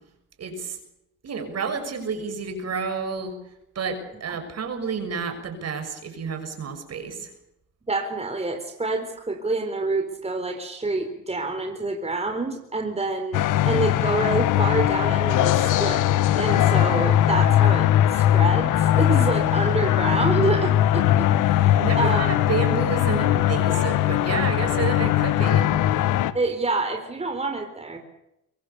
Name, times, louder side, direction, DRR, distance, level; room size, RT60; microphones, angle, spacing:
voice 1, 0.4-0.8 1.2-3.3 3.7-7.3 21.8-25.7, right 5 dB, 55° right, 7 dB, 6.6 m, -30 dB
voice 2, 7.9-16.1 16.4-22.3 26.3-28.0, right 3 dB, 20° right, 5 dB, 4.0 m, -27 dB
sound 1, 13.3-26.3, left 12 dB, 90° left, 1.4 m, -20 dB
24.0 x 22.5 x 7.0 m, 0.83 s
cardioid pair, 90°, 30 cm